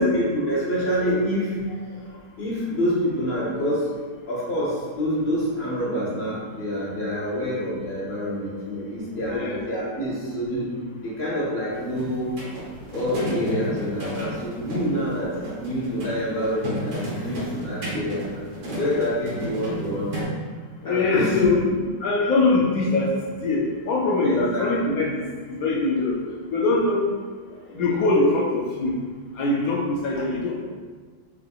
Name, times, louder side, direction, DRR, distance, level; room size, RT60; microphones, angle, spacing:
voice 1, 0.0-3.8 4.3-10.7 11.0-12.3 12.9-18.4 18.7-20.3 20.8-21.4 24.2-24.7 27.6-27.8, equal, 45° left, -6 dB, 1.0 m, -27 dB
voice 2, 9.3-9.6 14.7-14.9 20.8-21.6 22.0-26.2 26.5-27.0 27.7-29.0 29.4-30.6, left 3 dB, 70° left, -3 dB, 0.8 m, -23 dB
sound 1, 11.7-20.2, equal, 65° right, 1.5 m, -32 dB
4.6 x 3.2 x 2.3 m, 1.5 s
omnidirectional pair, 1.9 m